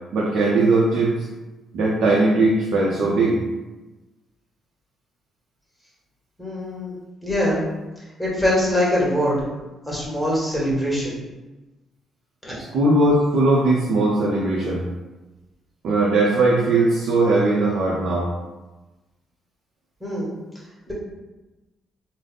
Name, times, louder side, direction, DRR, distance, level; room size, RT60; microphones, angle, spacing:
voice 1, 0.1-1.2 1.7-3.4 12.6-14.8 15.8-18.3, right 2 dB, 75° right, -4 dB, 0.6 m, -19 dB
voice 2, 6.4-6.9 7.2-7.6 8.2-9.4 9.9-11.1 12.4-12.5 20.0-20.3 20.9-21.0, left 1 dB, ahead, -6 dB, 1.5 m, -23 dB
3.4 x 2.1 x 3.9 m, 1.1 s
cardioid pair, 90°, 0 cm